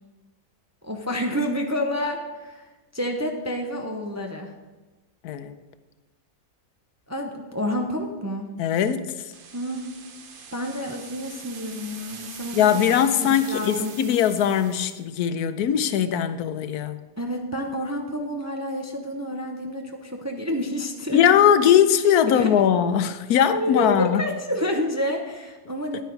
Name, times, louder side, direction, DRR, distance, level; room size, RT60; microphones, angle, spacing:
voice 1, 0.8-2.7 2.9-4.5 7.1-8.5 9.5-9.9 10.5-12.6 13.5-13.9 17.2-21.2 22.3-22.5 23.5-26.0, equal, 15° right, 2 dB, 0.5 m, -29 dB
voice 2, 5.2-5.6 8.6-9.3 12.5-17.0 21.1-24.2 25.9-26.0, left 9 dB, 85° left, 11 dB, 1.2 m, -20 dB
sound 1, 9.3-15.0, right 5 dB, 45° right, 0.8 m, -42 dB
9.9 x 9.1 x 4.6 m, 1.2 s
omnidirectional pair, 1.6 m